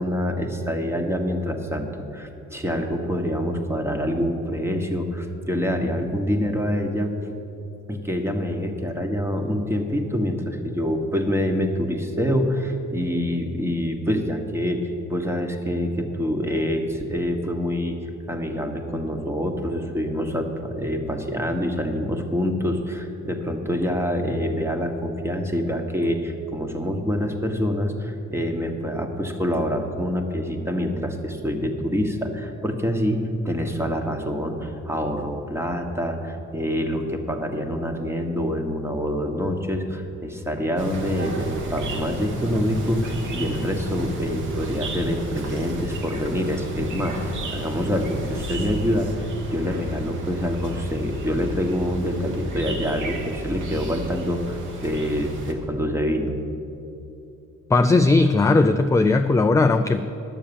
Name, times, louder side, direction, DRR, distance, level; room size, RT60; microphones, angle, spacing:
voice 1, 0.0-7.1 7.9-18.0 18.3-49.1 49.5-56.4, equal, 10° right, 3 dB, 1.3 m, -26 dB
sound 1, 40.8-55.5, right 1 dB, 80° right, 1.7 m, -32 dB
voice 2, 57.7-60.0, left 3 dB, 10° left, 6 dB, 0.3 m, -17 dB
11.0 x 7.1 x 7.0 m, 2.8 s
cardioid pair, 90°, 30 cm